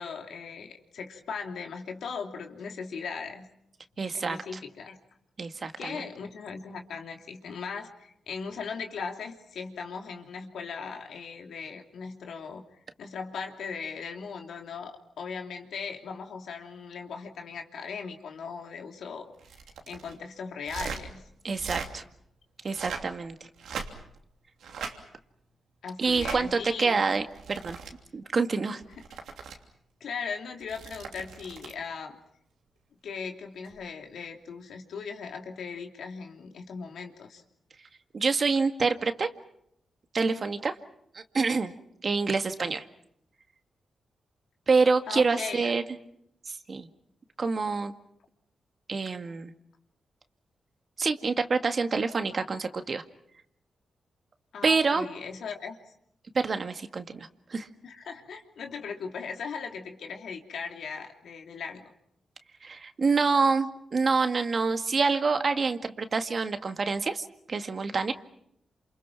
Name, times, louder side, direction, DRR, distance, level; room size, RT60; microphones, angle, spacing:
voice 1, 0.0-3.5 4.1-5.0 5.8-12.6 13.0-19.3 19.9-21.3 25.8-27.0 30.0-32.2 33.0-37.4 45.1-45.7 54.5-55.8 57.8-61.9, left 5 dB, 80° left, 3 dB, 3.0 m, -38 dB
voice 2, 4.0-4.4 5.4-6.1 21.4-22.0 22.6-23.3 26.0-27.8 28.1-28.8 38.1-39.3 40.1-40.7 41.1-41.7 42.0-42.8 44.7-45.8 46.5-46.9 47.4-47.9 48.9-49.5 51.0-53.0 54.6-55.1 56.3-57.7 62.6-68.1, right 4 dB, 50° right, 7 dB, 1.9 m, -27 dB
sound 1, 19.4-20.1 20.6-21.0 21.5-21.9 22.6-23.1 23.6-24.2 24.6-24.9 26.0-26.4 27.2-27.9 28.8-29.6 30.6-31.8 33.6-33.8, right 6 dB, 90° right, 3.0 m, -39 dB
28.5 x 28.0 x 6.0 m, 0.75 s
cardioid pair, 65°, 0 cm